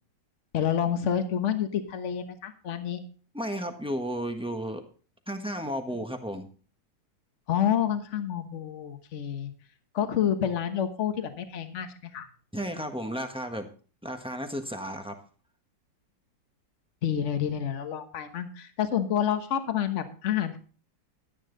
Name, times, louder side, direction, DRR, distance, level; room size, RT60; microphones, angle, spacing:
voice 1, 0.5-3.0 7.5-9.5 9.9-12.3 17.0-20.6, left 9 dB, 45° left, 8 dB, 1.4 m, -28 dB
voice 2, 3.3-4.8 5.3-6.5 12.5-13.7 14.0-15.2, equal, 5° right, 5 dB, 1.1 m, -33 dB
12.0 x 10.5 x 4.0 m, 0.39 s
omnidirectional pair, 2.0 m